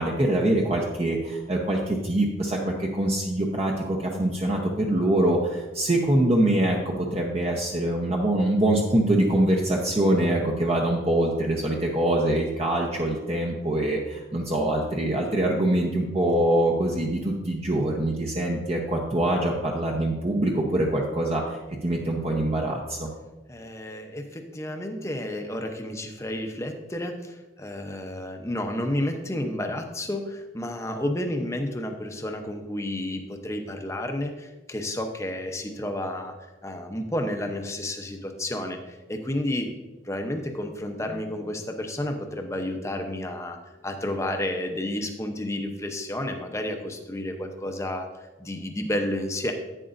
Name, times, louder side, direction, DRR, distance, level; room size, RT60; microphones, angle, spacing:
voice 1, 0.0-23.1, right 1 dB, 30° right, -1 dB, 0.8 m, -24 dB
voice 2, 23.5-36.3 36.6-39.8 40.0-43.6 43.8-49.5, left 1 dB, 15° left, 4 dB, 0.7 m, -31 dB
11.0 x 9.1 x 2.6 m, 1.2 s
head